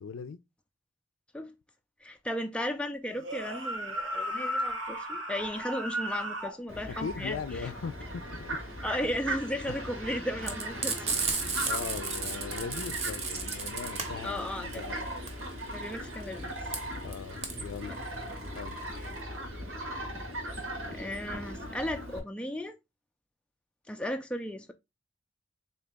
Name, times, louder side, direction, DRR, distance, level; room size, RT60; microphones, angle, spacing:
voice 1, 0.0-0.4 7.0-8.6 9.7-9.8 11.6-15.1 17.0-18.0 18.4-18.8, left 6 dB, 90° left, 0.4 m, -39 dB
voice 2, 2.0-7.7 8.8-11.2 14.2-14.8 15.7-16.6 20.9-22.8 23.9-24.7, left 1 dB, 5° left, 0.3 m, -35 dB
sound 1, 3.1-6.6, equal, 65° right, 1.0 m, -35 dB
Fowl, 6.7-22.2, right 1 dB, 85° right, 1.4 m, -38 dB
Frying (food), 10.4-19.2, right 5 dB, 30° right, 0.7 m, -34 dB
3.9 x 2.9 x 3.3 m
head